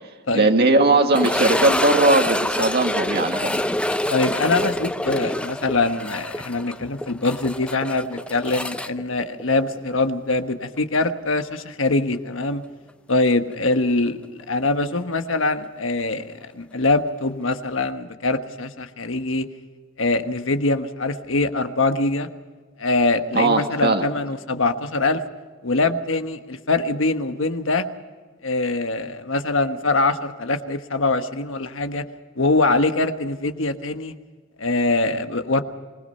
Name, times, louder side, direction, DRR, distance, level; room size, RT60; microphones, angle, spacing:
voice 1, 0.3-3.7 23.3-24.0, right 2 dB, 55° right, 4 dB, 1.9 m, -19 dB
sound 1, 1.1-10.1 10.3-10.4 11.0-11.1 13.7-13.8, left 1 dB, 5° left, 0.6 m, -26 dB
voice 2, 4.1-12.6 13.1-19.5 20.0-22.3 22.8-25.2 25.6-27.9 28.4-32.0 32.4-34.1 34.6-35.6, left 2 dB, 70° left, 8 dB, 1.3 m, -23 dB
25.5 x 20.0 x 5.6 m, 1.4 s
head